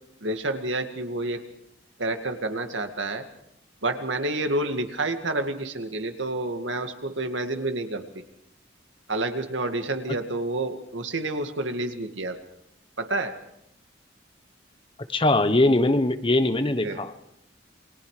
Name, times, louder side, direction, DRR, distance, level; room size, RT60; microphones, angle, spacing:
voice 1, 0.2-1.4 2.0-3.2 3.8-8.0 9.1-12.4 13.0-13.3 16.8-17.0, right 2 dB, 80° right, 6 dB, 2.2 m, -29 dB
voice 2, 15.1-17.1, left 2 dB, 25° left, 10 dB, 1.1 m, -21 dB
28.5 x 22.5 x 5.0 m, 0.77 s
head